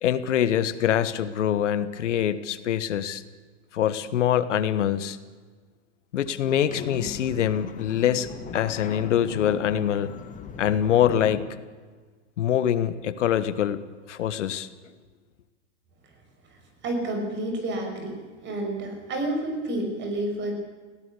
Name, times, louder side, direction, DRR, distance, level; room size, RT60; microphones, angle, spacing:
voice 1, 0.0-3.2 3.7-5.2 6.1-10.1 10.6-11.5 12.4-13.8 14.1-14.7, left 10 dB, 80° left, 14 dB, 1.5 m, -24 dB
sound 1, 6.4-11.4, left 7 dB, 20° left, 2.0 m, -39 dB
voice 2, 16.8-18.1 18.4-20.5, right 1 dB, 30° right, 4 dB, 6.0 m, -29 dB
19.5 x 17.0 x 8.4 m, 1.4 s
hypercardioid pair, 130°, 36 cm